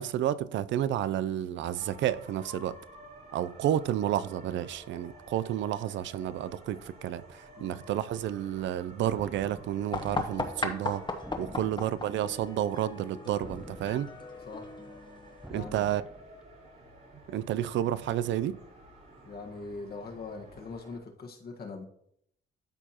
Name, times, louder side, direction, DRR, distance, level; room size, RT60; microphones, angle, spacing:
voice 1, 0.0-2.8 3.3-11.1 11.4-14.1 15.5-16.0 17.3-18.6, right 11 dB, 70° right, 0.4 m, -31 dB
sound 1, 1.7-21.0, right 1 dB, 50° right, 3.4 m, -52 dB
sound 2, 9.1-10.0 11.2-12.2 13.4-14.4 15.4-16.3, right 1 dB, 5° right, 0.3 m, -47 dB
sound 3, 9.9-15.5, left 3 dB, 25° left, 1.0 m, -37 dB
voice 2, 19.2-21.8, left 3 dB, 50° left, 1.4 m, -42 dB
12.5 x 4.6 x 2.9 m
cardioid pair, 90°, 20 cm